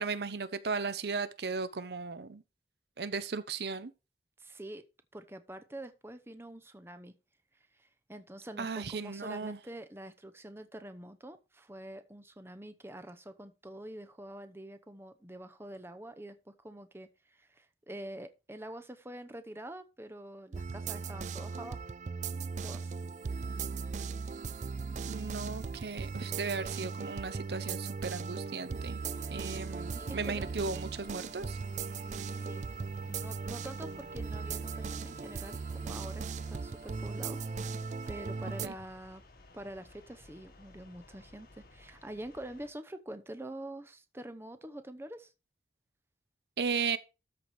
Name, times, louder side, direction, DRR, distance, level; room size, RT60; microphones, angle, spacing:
voice 1, 0.0-2.4 3.0-3.9 8.6-9.6 25.1-29.0 29.3-31.6 38.6-38.7 46.6-47.0, right 4 dB, 65° right, 0.8 m, -36 dB
voice 2, 4.4-4.8 5.1-7.2 7.7-21.9 22.6-22.9 29.4-30.5 32.3-32.6 33.1-39.2 39.5-45.3, right 1 dB, 15° right, 0.8 m, -46 dB
sound 1, 20.5-38.7, right 5 dB, 40° right, 0.4 m, -38 dB
sound 2, 29.0-42.7, left 2 dB, 55° left, 2.1 m, -56 dB
13.0 x 4.7 x 4.8 m
head